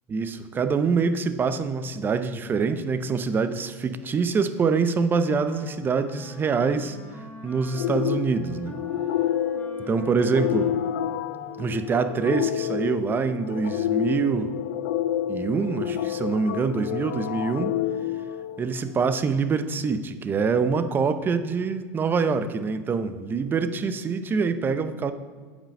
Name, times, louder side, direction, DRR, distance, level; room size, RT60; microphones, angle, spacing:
voice 1, 0.1-7.0 7.4-8.8 9.9-10.7 11.6-14.5 15.3-17.8 18.6-25.1, right 5 dB, 25° right, 11 dB, 0.6 m, -25 dB
Wind instrument woodwind instrument, 5.1-11.8, left 1 dB, 20° left, 1.3 m, -45 dB
sound 1, 7.7-19.1, left 11 dB, 85° left, 0.4 m, -29 dB
8.8 x 5.1 x 6.5 m, 1.5 s
supercardioid pair, 115°, 8 cm